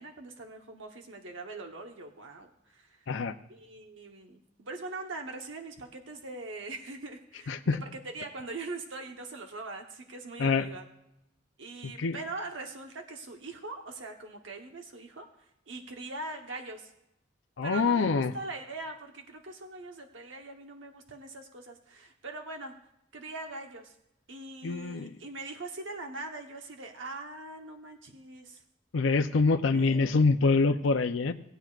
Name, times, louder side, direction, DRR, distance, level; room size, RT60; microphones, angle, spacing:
voice 1, 0.0-7.6 7.9-10.8 11.6-16.9 17.6-22.7 23.1-23.9 24.3-28.6 29.7-30.4, right 2 dB, 75° right, 3 dB, 1.0 m, -42 dB
voice 2, 17.6-18.3 24.6-25.2 28.9-31.3, left 4 dB, 90° left, 7 dB, 0.6 m, -25 dB
19.0 x 9.1 x 2.5 m, 0.83 s
head